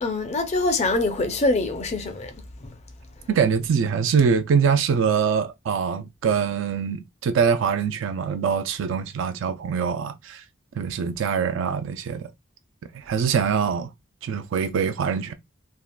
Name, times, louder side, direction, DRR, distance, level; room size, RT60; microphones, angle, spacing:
voice 1, 0.0-2.4 2.6-2.7, left 2 dB, 35° left, 0.4 m, -24 dB
voice 2, 3.3-10.4 10.7-12.3 12.9-13.9 14.2-15.3, right 6 dB, 70° right, 0.3 m, -23 dB
3.4 x 2.3 x 2.2 m
head